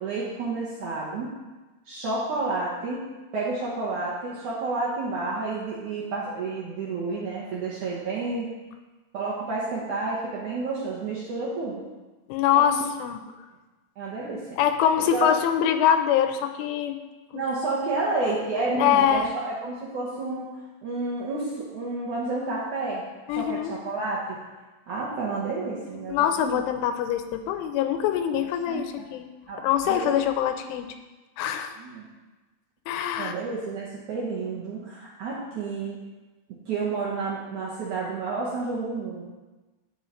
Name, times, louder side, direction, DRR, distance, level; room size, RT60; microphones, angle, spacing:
voice 1, 0.0-1.3 1.9-3.1 3.3-8.5 9.1-11.8 12.5-12.8 14.0-14.6 15.0-15.3 17.3-20.5 20.8-23.0 23.3-24.4 24.9-26.6 28.7-29.0 29.5-29.6 29.8-30.1 31.8-32.0 33.2-36.0 36.7-39.2, right 3 dB, 75° right, -6 dB, 1.8 m, -30 dB
voice 2, 12.3-13.2 14.6-17.0 17.9-18.0 18.7-19.3 23.3-23.7 26.1-29.3 29.6-31.0 31.4-31.7 32.9-33.3, left 9 dB, 85° left, 8 dB, 3.2 m, -24 dB
16.5 x 5.6 x 3.2 m, 1.2 s
omnidirectional pair, 5.5 m